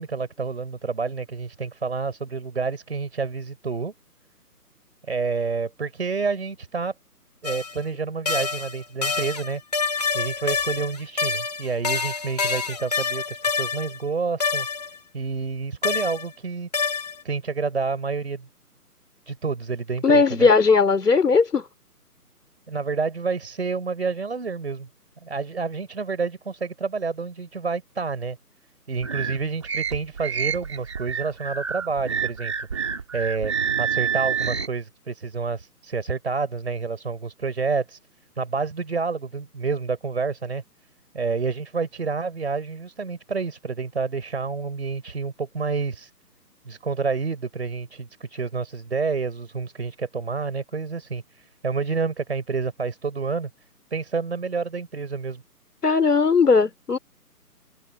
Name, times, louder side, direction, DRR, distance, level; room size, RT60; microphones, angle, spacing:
voice 1, 0.0-3.9 5.1-6.9 7.4-9.6 10.1-14.7 15.1-16.7 17.2-18.5 19.3-20.5 22.7-24.9 25.2-28.4 28.9-32.8 33.1-33.5 33.8-38.0 38.4-40.6 41.1-46.1 46.6-53.5 53.9-55.4, right 4 dB, 40° right, 4.7 m, -29 dB
sound 1, 7.4-7.8 8.3-14.0 14.4-15.0 15.8-16.3 16.7-17.2, left 5 dB, 25° left, 2.5 m, -27 dB
voice 2, 20.0-21.6 55.8-57.0, left 4 dB, 75° left, 2.9 m, -18 dB
sound 2, 29.0-34.7, right 7 dB, 20° right, 2.2 m, -28 dB
hypercardioid pair, 180°, 47 cm